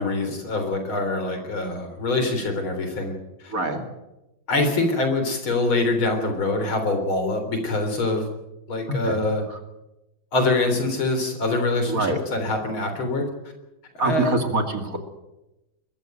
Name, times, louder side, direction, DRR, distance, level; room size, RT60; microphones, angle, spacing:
voice 1, 0.0-3.1 3.4-3.5 4.5-8.3 8.7-9.4 10.3-13.3 13.9-14.3, left 2 dB, 85° left, 6 dB, 4.5 m, -24 dB
voice 2, 3.5-3.8 8.9-9.2 9.5-9.6 11.9-12.2 14.0-15.0, right 2 dB, 40° right, 5 dB, 2.8 m, -24 dB
21.5 x 14.5 x 9.1 m, 0.95 s
omnidirectional pair, 2.2 m